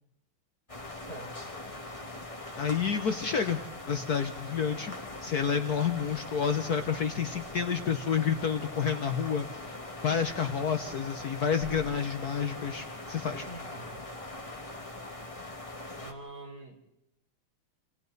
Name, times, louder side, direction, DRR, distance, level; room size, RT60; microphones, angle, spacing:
sound 1, 0.7-16.1, left 2 dB, 20° left, 1.5 m, -42 dB
voice 1, 1.1-1.8 13.4-14.0 16.0-16.9, right 1 dB, 45° right, -1 dB, 5.0 m, -46 dB
voice 2, 2.5-3.6 3.9-4.9 5.2-9.8 10.0-13.5, left 7 dB, 55° left, 7 dB, 1.3 m, -29 dB
28.0 x 28.0 x 4.0 m, 0.81 s
omnidirectional pair, 2.2 m